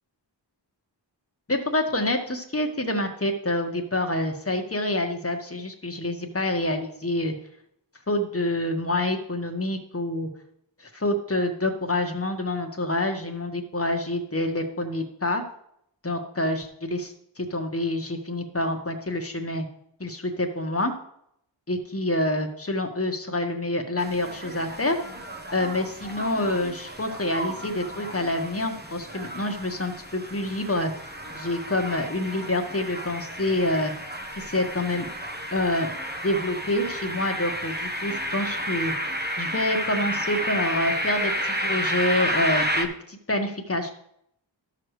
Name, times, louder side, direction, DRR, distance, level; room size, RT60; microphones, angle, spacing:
voice 1, 1.5-7.3 8.1-10.3 10.8-15.4 16.0-19.7 20.0-20.9 21.7-25.0 25.5-30.9 31.3-33.9 34.4-35.1 35.5-35.9 36.2-38.9 39.4-43.9, left 1 dB, 30° left, 3 dB, 1.5 m, -27 dB
sound 1, 24.0-42.8, equal, 20° right, 1.1 m, -31 dB
13.0 x 6.7 x 3.2 m, 0.72 s
wide cardioid pair, 50°, 47 cm